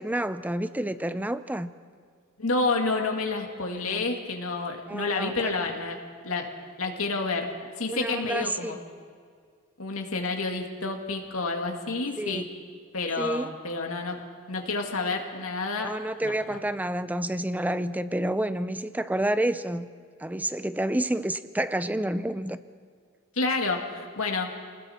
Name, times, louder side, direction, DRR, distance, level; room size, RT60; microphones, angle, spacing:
voice 1, 0.0-1.7 3.8-4.0 4.9-5.7 7.9-8.8 12.2-12.4 13.2-13.5 15.8-19.9 20.2-22.6, right 1 dB, 10° right, 13 dB, 0.6 m, -29 dB
voice 2, 2.4-6.0 6.2-6.5 6.8-8.8 9.8-12.5 12.9-14.2 14.5-15.9 16.2-16.6 23.3-24.5, left 3 dB, 70° left, 2 dB, 2.1 m, -29 dB
30.0 x 20.0 x 4.4 m, 2.1 s
head